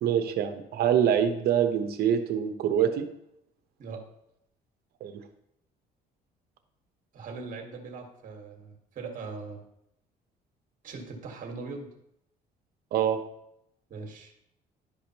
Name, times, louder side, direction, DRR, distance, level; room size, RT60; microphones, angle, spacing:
voice 1, 0.0-3.1 5.0-5.1 12.9-13.2, right 9 dB, 70° right, 7 dB, 0.9 m, -25 dB
voice 2, 7.1-9.6 10.8-11.9 13.9-14.3, right 4 dB, 55° right, 2 dB, 1.7 m, -40 dB
11.0 x 5.0 x 3.0 m, 0.78 s
cardioid pair, 110°, 17 cm